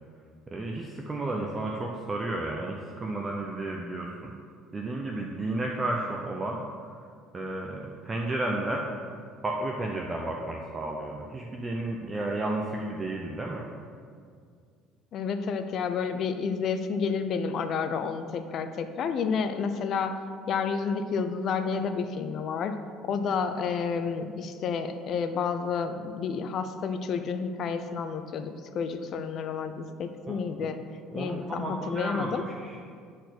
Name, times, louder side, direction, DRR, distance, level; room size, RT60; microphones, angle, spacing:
voice 1, 0.5-4.3 4.7-6.6 7.3-8.8 9.4-13.6 30.3-30.7 31.1-32.8, right 2 dB, 20° right, 0 dB, 0.6 m, -32 dB
voice 2, 15.1-20.2 20.5-22.7 23.0-30.8 31.1-32.4, left 5 dB, 45° left, 8 dB, 0.6 m, -30 dB
10.0 x 4.5 x 6.0 m, 2.1 s
cardioid pair, 145°, 0 cm